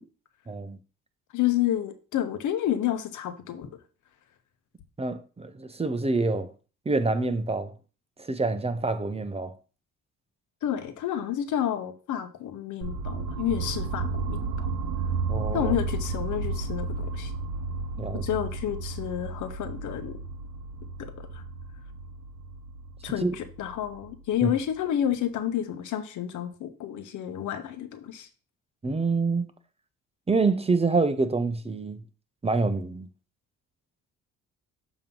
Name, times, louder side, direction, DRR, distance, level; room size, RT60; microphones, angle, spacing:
voice 1, 0.5-0.8 5.0-6.5 6.9-7.7 8.2-9.5 15.3-15.7 18.0-18.2 23.2-23.3 24.4-24.5 28.8-29.5 30.3-32.0 32.4-33.1, right 3 dB, 20° right, 0.7 m, -26 dB
voice 2, 1.3-3.7 10.6-14.7 15.5-17.3 18.2-20.2 21.0-21.4 23.0-28.3, left 11 dB, 75° left, 0.9 m, -30 dB
sound 1, 12.8-24.7, right 4 dB, 65° right, 0.9 m, -33 dB
7.1 x 3.0 x 5.3 m
cardioid pair, 90°, 30 cm